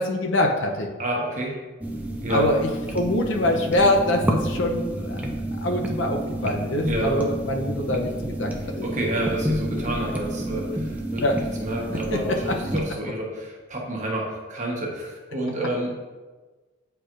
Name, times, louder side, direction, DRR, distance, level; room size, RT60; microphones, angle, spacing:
voice 1, 0.0-0.9 2.3-2.7 2.9-8.1 8.4-8.9 11.2-11.4 12.1-12.4, left 1 dB, 60° left, 2 dB, 0.6 m, -24 dB
voice 2, 1.0-1.5 2.2-2.5 6.9-7.2 8.6-15.9, right 1 dB, 35° right, -1 dB, 1.0 m, -29 dB
sound 1, 1.8-12.8, right 1 dB, 5° right, 0.4 m, -29 dB
8.4 x 4.5 x 2.5 m, 1.3 s
head